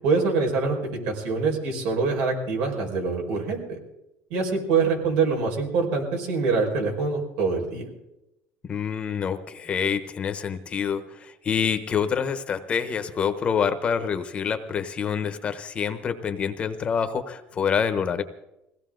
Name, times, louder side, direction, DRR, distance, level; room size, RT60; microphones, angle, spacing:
voice 1, 0.0-0.8 1.0-3.8 4.3-7.9, right 4 dB, 90° right, 1 dB, 5.0 m, -24 dB
voice 2, 8.6-18.2, left 7 dB, 25° left, 9 dB, 0.9 m, -27 dB
21.5 x 17.0 x 3.9 m, 0.89 s
cardioid pair, 175°, 5 cm